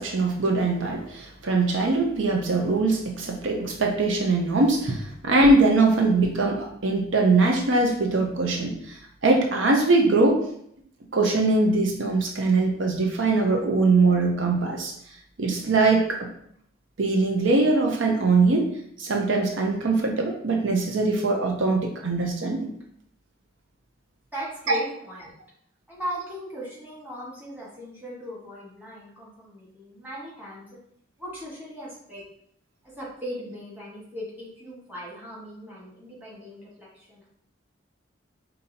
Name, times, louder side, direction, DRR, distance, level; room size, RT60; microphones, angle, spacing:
voice 1, 0.0-9.0 9.2-10.4 11.1-14.9 15.4-16.3 17.0-18.7 19.0-22.7, right 3 dB, 80° right, 2 dB, 0.6 m, -22 dB
voice 2, 24.3-25.3 25.9-30.8 31.2-32.2 32.9-37.3, equal, 10° right, -7 dB, 1.4 m, -38 dB
5.3 x 2.7 x 2.8 m, 0.69 s
head